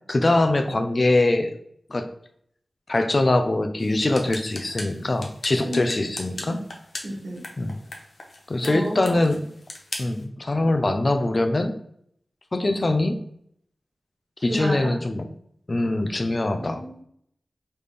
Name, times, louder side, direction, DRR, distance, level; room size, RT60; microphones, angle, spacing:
voice 1, 0.1-1.6 1.9-2.1 2.9-6.6 7.6-7.7 8.5-9.4 10.0-11.7 12.5-13.2 14.4-15.2 15.7-16.8, left 2 dB, 40° left, 7 dB, 0.5 m, -23 dB
sound 1, 3.8-10.2, left 2 dB, 60° left, 0.8 m, -39 dB
voice 2, 7.0-7.4 8.6-9.1 14.5-15.0 16.5-17.0, equal, 70° right, -5 dB, 1.2 m, -31 dB
4.2 x 3.4 x 3.4 m, 0.68 s
wide cardioid pair, 95°, 0 cm